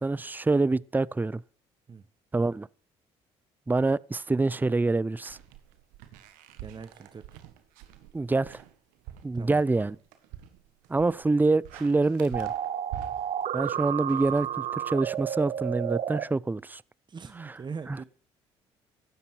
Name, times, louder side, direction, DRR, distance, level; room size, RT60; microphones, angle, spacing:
voice 1, 0.0-1.4 2.3-2.7 3.7-5.4 8.1-8.6 9.2-10.0 10.9-12.5 13.5-16.8 17.9-18.0, right 3 dB, 15° right, 0.5 m, -26 dB
sound 1, 5.2-15.0, right 11 dB, 75° right, 1.6 m, -47 dB
voice 2, 6.6-7.4 9.3-9.6 17.1-18.0, right 5 dB, 35° right, 1.1 m, -41 dB
sound 2, 12.3-16.2, right 10 dB, 55° right, 1.0 m, -31 dB
16.5 x 12.5 x 4.6 m
hypercardioid pair, 55°, 14 cm